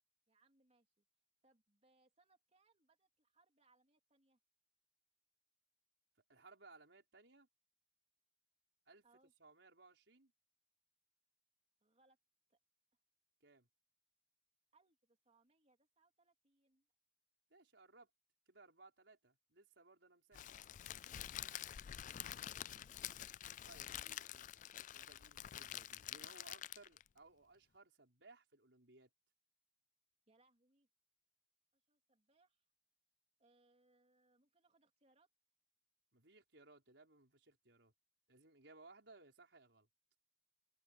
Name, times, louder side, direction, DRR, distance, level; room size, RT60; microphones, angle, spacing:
voice 1, 0.3-1.0 1.4-4.4 9.0-9.3 11.8-12.2 12.5-12.6 14.7-16.9 21.8-24.1 30.3-30.9 31.7-32.6 33.4-35.3, right 2 dB, 35° right, 3.5 m, -75 dB
voice 2, 6.3-7.5 8.9-9.0 9.4-10.3 13.4-13.7 17.5-18.1 18.5-20.5 23.7-29.1 36.1-37.9 38.3-39.9, right 3 dB, 85° right, 5.0 m, -63 dB
Crackle, 20.3-27.1, left 11 dB, 45° left, 0.3 m, -48 dB
head